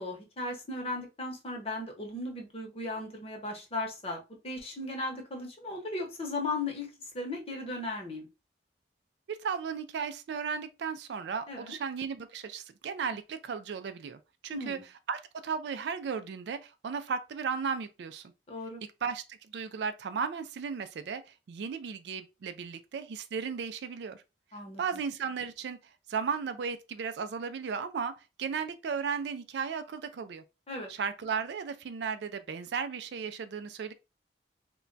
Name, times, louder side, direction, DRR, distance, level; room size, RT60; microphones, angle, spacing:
voice 1, 0.0-6.9 7.1-8.3 11.5-11.8 14.5-14.8 18.5-18.8 24.5-24.8 30.7-30.9, left 2 dB, 35° left, 0.8 m, -36 dB
voice 2, 9.3-18.3 19.0-24.2 24.8-25.8 26.1-30.4 30.9-33.9, right 6 dB, 70° right, 0.3 m, -35 dB
2.2 x 2.1 x 3.8 m
head